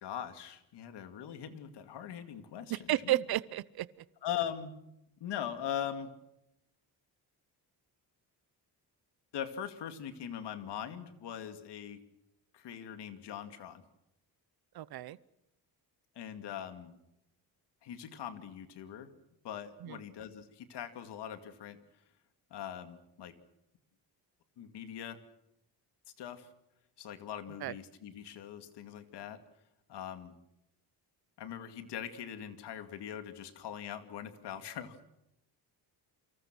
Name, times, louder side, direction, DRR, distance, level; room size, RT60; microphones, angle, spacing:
voice 1, 0.0-3.2 4.2-4.7 5.2-6.1 9.3-12.0 12.5-13.8 16.2-17.0 17.8-19.1 19.4-21.8 22.5-23.4 24.6-25.2 26.2-26.5 27.0-29.4 29.9-30.3 31.4-35.0, left 9 dB, 85° left, 9 dB, 2.5 m, -41 dB
voice 2, 2.7-3.9 14.7-15.2 19.8-20.0 27.6-27.7, right 15 dB, 65° right, 19 dB, 0.8 m, -32 dB
29.0 x 25.0 x 6.2 m, 0.85 s
cardioid pair, 160°, 40 cm